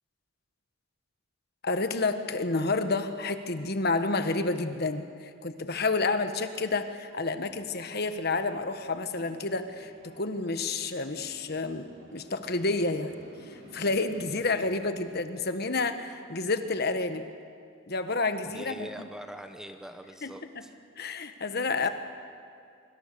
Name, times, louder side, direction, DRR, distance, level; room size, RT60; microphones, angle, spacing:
voice 1, 1.6-13.1 13.5-17.3 17.9-19.1 20.2-20.3 21.0-21.9, left 3 dB, 50° left, 9 dB, 1.3 m, -30 dB
sound 1, 7.4-15.1, right 1 dB, 55° right, 7.0 m, -54 dB
voice 2, 18.5-20.7 21.8-21.9, equal, 5° right, 7 dB, 1.0 m, -43 dB
25.0 x 24.5 x 6.8 m, 2.4 s
head